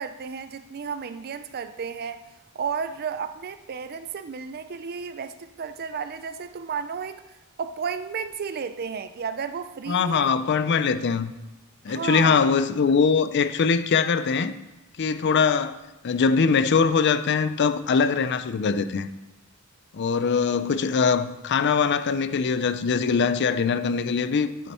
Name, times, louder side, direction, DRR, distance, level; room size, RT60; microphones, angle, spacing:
voice 1, 0.0-2.2 2.5-10.3 11.9-12.5, right 6 dB, 45° right, 0.4 m, -33 dB
voice 2, 9.9-11.3 11.8-14.5 15.0-19.1 19.9-24.7, left 5 dB, 50° left, 0.4 m, -22 dB
8.8 x 8.3 x 4.3 m
head